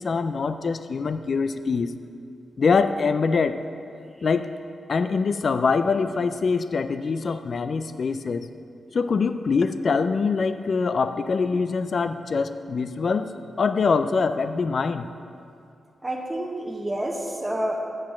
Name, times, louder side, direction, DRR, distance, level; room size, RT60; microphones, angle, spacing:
voice 1, 0.0-1.9 2.6-3.6 4.2-4.5 4.9-8.5 8.9-15.1, left 4 dB, 60° left, 10 dB, 0.4 m, -24 dB
voice 2, 16.0-17.8, right 1 dB, 15° right, 1 dB, 1.1 m, -29 dB
8.1 x 6.6 x 6.0 m, 2.4 s
cardioid pair, 60°, 0 cm